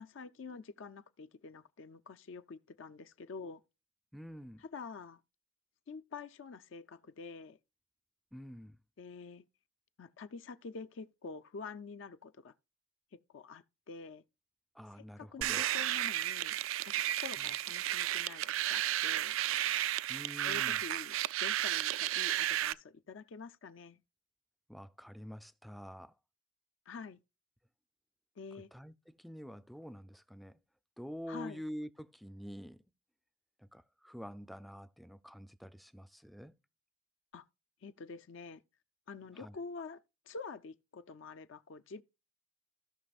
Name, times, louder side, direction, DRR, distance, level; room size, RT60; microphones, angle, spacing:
voice 1, 0.0-3.6 4.7-5.2 5.9-7.6 9.0-9.4 10.0-12.5 13.3-14.2 15.2-16.6 16.9-19.4 20.4-21.1 21.4-24.0 26.9-27.2 28.4-28.7 31.3-31.6 37.3-37.4 37.8-38.6 39.1-40.0 40.3-42.0, left 4 dB, 65° left, 0.4 m, -47 dB
voice 2, 4.1-4.6 8.3-8.8 14.7-15.7 17.4-17.5 20.1-20.8 24.7-26.1 28.7-30.6 31.0-32.8 33.6-36.5 39.3-39.6, equal, ahead, 0.4 m, -47 dB
sound 1, 15.4-22.7, right 13 dB, 75° right, 0.3 m, -33 dB
16.5 x 5.9 x 2.3 m
head